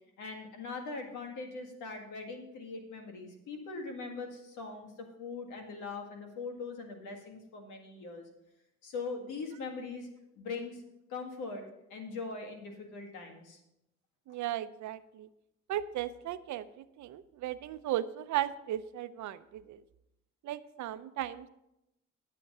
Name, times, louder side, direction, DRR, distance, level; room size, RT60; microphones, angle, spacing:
voice 1, 0.2-4.9 5.2-8.3 8.8-10.1 10.4-10.8 11.1-11.6 11.9-13.6, left 4 dB, 90° left, 3 dB, 1.9 m, -41 dB
voice 2, 14.3-15.3 15.7-19.8 20.4-21.5, right 12 dB, 70° right, 14 dB, 0.6 m, -36 dB
10.5 x 7.5 x 5.5 m, 0.89 s
cardioid pair, 90°, 30 cm